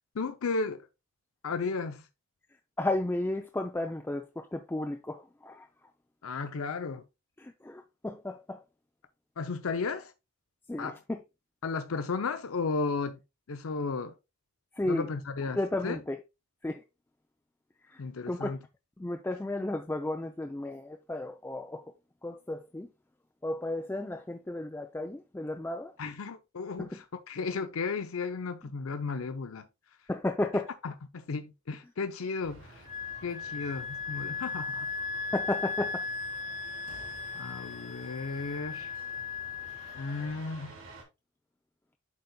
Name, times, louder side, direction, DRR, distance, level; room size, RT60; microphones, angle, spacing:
voice 1, 0.1-0.9 1.4-2.0 6.2-7.0 9.4-10.1 10.8-11.0 11.6-13.2 13.5-14.1 14.9-15.6 15.8-16.0 18.0-18.6 26.0-29.7 30.8-32.8 33.2-34.9 37.3-39.0 39.9-40.8, left 4 dB, 70° left, 0.5 m, -34 dB
voice 2, 2.8-5.7 7.4-8.6 10.7-11.2 14.8-15.1 15.5-16.2 16.6-16.8 17.9-18.5 19.0-21.8 22.2-22.9 23.4-25.9 26.8-26.9 30.1-30.7 35.3-36.0, left 1 dB, 10° left, 0.4 m, -33 dB
sound 1, 32.4-41.0, right 2 dB, 60° right, 2.3 m, -52 dB
Wind instrument woodwind instrument, 32.9-40.3, left 4 dB, 35° left, 1.0 m, -37 dB
11.5 x 4.0 x 2.2 m
head